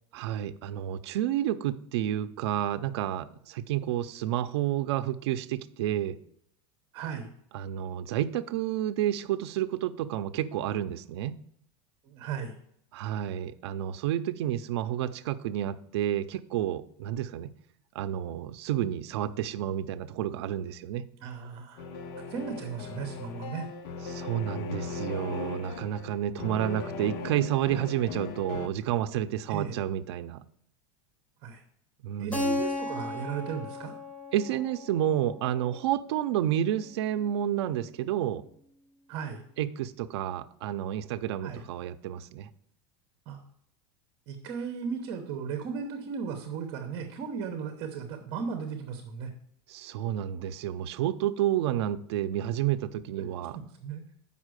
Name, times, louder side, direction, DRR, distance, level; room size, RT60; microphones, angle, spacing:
voice 1, 0.1-6.2 7.5-11.4 12.9-17.5 17.9-21.0 24.1-30.4 32.0-32.4 34.3-38.4 39.6-42.5 49.7-53.6, right 11 dB, 70° right, 10 dB, 0.6 m, -30 dB
voice 2, 6.9-7.3 12.1-12.5 21.2-21.9 22.3-23.7 29.5-29.8 31.4-31.6 32.2-33.9 39.1-39.4 41.4-41.6 43.3-43.4 44.3-49.3 53.2-53.3 53.5-54.0, right 6 dB, 35° right, 6 dB, 1.0 m, -36 dB
sound 1, 21.8-28.7, left 4 dB, 50° left, 0.8 m, -38 dB
Keyboard (musical), 32.3-36.9, left 2 dB, 10° left, 0.9 m, -36 dB
7.4 x 5.5 x 6.4 m, 0.70 s
supercardioid pair, 175°, 14 cm